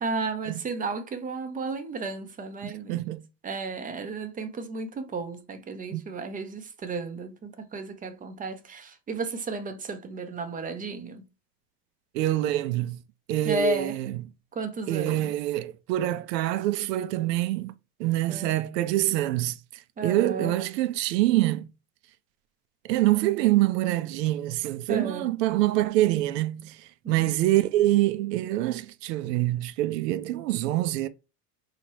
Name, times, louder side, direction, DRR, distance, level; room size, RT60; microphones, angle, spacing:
voice 1, 0.0-3.0 3.4-11.2 13.4-14.0 14.5-15.3 18.3-18.6 20.0-20.6 24.9-25.3 27.0-27.3, right 3 dB, 20° right, 0.5 m, -33 dB
voice 2, 2.6-3.2 5.9-6.0 12.1-13.0 13.3-14.2 14.9-17.7 18.0-21.7 22.8-31.1, right 15 dB, 85° right, 0.6 m, -25 dB
4.3 x 2.8 x 3.0 m
supercardioid pair, 120°, 48 cm